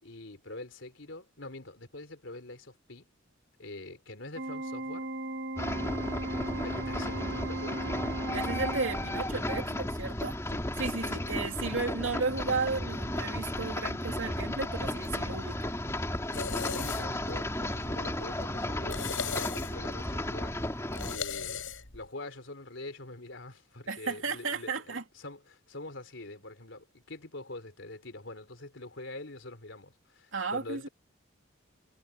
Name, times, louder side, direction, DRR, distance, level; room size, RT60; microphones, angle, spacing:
voice 1, 0.0-3.1 3.6-5.1 6.6-7.9 10.5-10.6 10.9-11.5 16.6-20.6 21.0-21.6 21.9-30.9, left 2 dB, 70° left, 3.5 m, -44 dB
Organ, 4.4-9.4, right 1 dB, 55° right, 1.0 m, -37 dB
sound 1, 5.6-21.2, left 1 dB, 15° left, 3.0 m, -34 dB
voice 2, 8.3-10.4 10.8-15.7 23.9-25.0 30.3-30.9, right 4 dB, 80° right, 2.9 m, -34 dB
sound 2, 14.5-22.1, left 6 dB, 85° left, 5.3 m, -40 dB
head